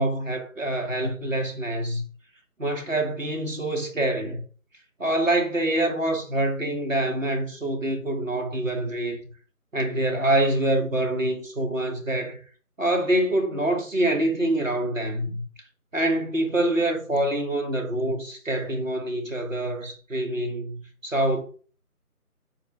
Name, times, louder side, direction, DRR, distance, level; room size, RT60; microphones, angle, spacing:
voice 1, 0.0-2.0 2.6-4.4 5.0-9.2 9.7-12.4 12.8-15.4 15.9-21.4, right 1 dB, 60° right, 2.0 m, -25 dB
13.5 x 4.6 x 2.5 m
figure-of-eight pair, 160°, 45 cm